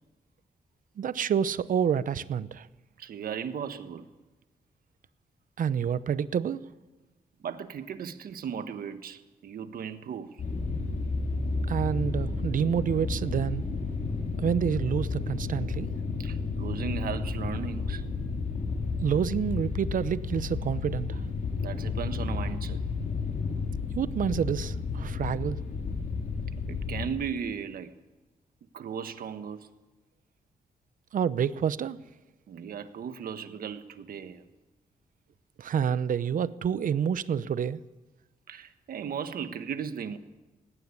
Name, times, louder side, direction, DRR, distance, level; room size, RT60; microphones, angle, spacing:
voice 1, 1.0-2.7 5.6-6.6 11.7-13.6 14.4-15.9 19.0-21.2 23.9-25.6 31.1-32.0 35.6-37.8, right 8 dB, 65° right, 0.8 m, -28 dB
voice 2, 3.0-4.1 7.4-10.4 16.2-18.0 21.5-22.8 26.7-27.9 28.7-29.7 32.5-34.5 38.5-40.2, right 7 dB, 85° right, 1.4 m, -36 dB
sound 1, 10.4-27.1, left 4 dB, 60° left, 4.7 m, -32 dB
19.0 x 17.0 x 9.8 m
wide cardioid pair, 130°, 15 cm